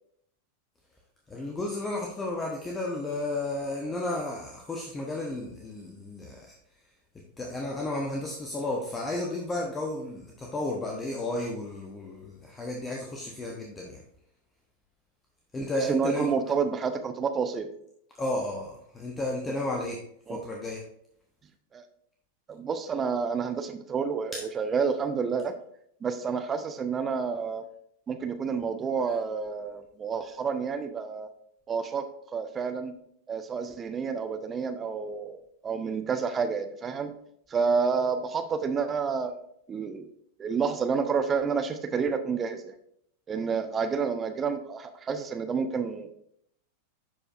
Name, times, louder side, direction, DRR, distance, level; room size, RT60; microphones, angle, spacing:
voice 1, 1.3-6.5 7.4-14.0 15.5-16.3 18.2-20.0 20.3-20.9 24.3-24.5, left 2 dB, 15° left, 0 dB, 1.0 m, -33 dB
voice 2, 15.7-17.7 20.3-20.4 21.7-21.8 22.5-25.6 26.0-27.6 28.1-31.3 31.7-32.1 32.3-32.9 33.3-37.1 37.5-39.3 39.7-40.1 40.4-42.8 43.3-46.1, right 5 dB, 20° right, 8 dB, 0.6 m, -29 dB
11.0 x 5.0 x 2.5 m, 0.70 s
figure-of-eight pair, 90°, 0 cm